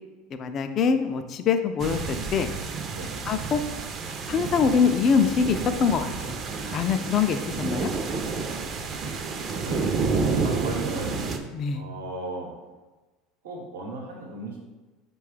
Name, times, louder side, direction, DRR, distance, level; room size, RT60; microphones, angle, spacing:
voice 1, 0.3-2.5 3.3-3.6 4.3-6.4 6.7-7.9 11.5-11.9, left 6 dB, 40° left, 7 dB, 0.3 m, -24 dB
sound 1, 1.8-11.4, right 4 dB, 40° right, 0.5 m, -30 dB
voice 2, 8.8-9.4 9.6-10.1 10.3-11.1 11.7-12.5 13.4-14.6, right 2 dB, 90° right, 0 dB, 0.9 m, -36 dB
4.7 x 2.3 x 4.8 m, 1.2 s
supercardioid pair, 105°, 0 cm